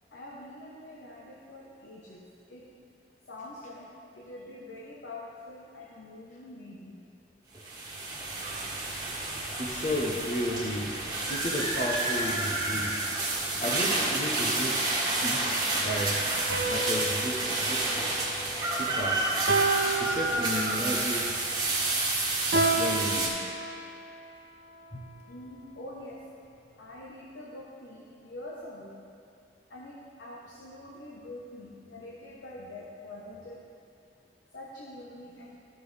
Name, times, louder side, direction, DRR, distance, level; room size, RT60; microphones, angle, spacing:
voice 1, 0.1-2.2 2.5-2.7 3.3-7.0 8.0-8.2 10.6-10.7 25.3-26.2 26.8-28.9 29.7-33.6 34.5-35.6, left 1 dB, 85° left, -5 dB, 1.1 m, -45 dB
sound 1, 7.5-23.3, right 2 dB, 20° right, 1.5 m, -29 dB
voice 2, 9.6-13.1 13.6-16.2 16.7-18.1 18.7-19.4 20.0-21.3 22.7-23.4 24.9-25.0, equal, 40° left, -1 dB, 1.0 m, -33 dB
sound 2, 16.5-18.9 19.5-21.0 22.5-24.2, right 3 dB, 85° right, 0.8 m, -31 dB
14.0 x 5.9 x 3.5 m, 2.6 s
head